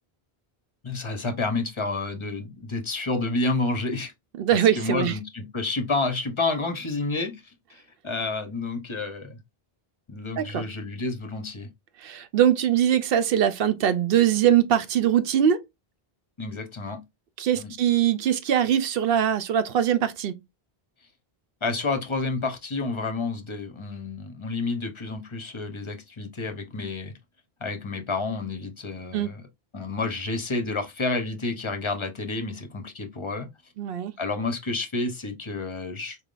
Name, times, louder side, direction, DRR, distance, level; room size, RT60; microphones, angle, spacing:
voice 1, 0.8-4.1 4.8-9.4 10.1-11.7 16.4-17.0 17.5-17.7 21.6-27.1 27.6-29.4 29.7-33.5 34.2-36.2, left 3 dB, 30° left, 0.7 m, -30 dB
voice 2, 4.4-5.2 10.4-10.6 12.0-15.6 17.4-20.4 29.1-29.3 33.8-34.1, right 10 dB, 65° right, 0.8 m, -22 dB
4.5 x 3.5 x 2.4 m
omnidirectional pair, 1.1 m